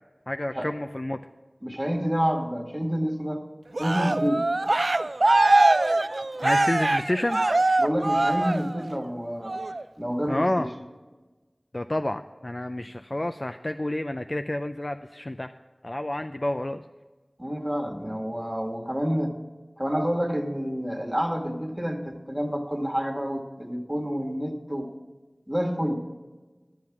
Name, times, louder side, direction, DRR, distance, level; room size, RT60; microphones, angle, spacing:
voice 1, 0.3-1.2 6.4-7.4 10.3-10.7 11.7-15.5 15.8-16.8, left 1 dB, 45° left, 8 dB, 0.4 m, -29 dB
voice 2, 1.6-3.4 3.8-4.4 7.8-9.6 10.0-10.7 17.4-19.3 19.8-24.9 25.5-26.0, equal, 15° right, 3 dB, 1.9 m, -28 dB
Cheering, 3.7-9.0 9.4-9.8, right 2 dB, 85° right, 0.3 m, -23 dB
12.5 x 7.7 x 5.9 m, 1.2 s
wide cardioid pair, 40°, 0 cm